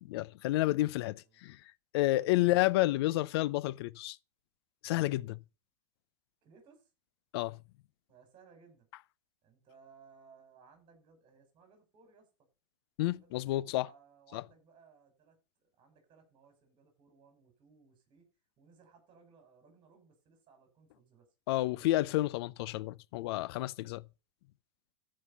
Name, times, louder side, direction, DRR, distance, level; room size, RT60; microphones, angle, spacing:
voice 1, 0.0-1.6 1.9-4.2 4.8-5.4 7.3-7.6 13.0-13.9 14.3-14.4 21.5-24.0, left 17 dB, 60° left, 0.6 m, -30 dB
voice 2, 0.9-1.4 6.4-6.9 8.1-8.9 9.4-12.3 13.1-18.2 18.6-21.3, right 5 dB, 35° right, 5.5 m, -62 dB
14.0 x 5.5 x 5.5 m
hypercardioid pair, 120°, 15 cm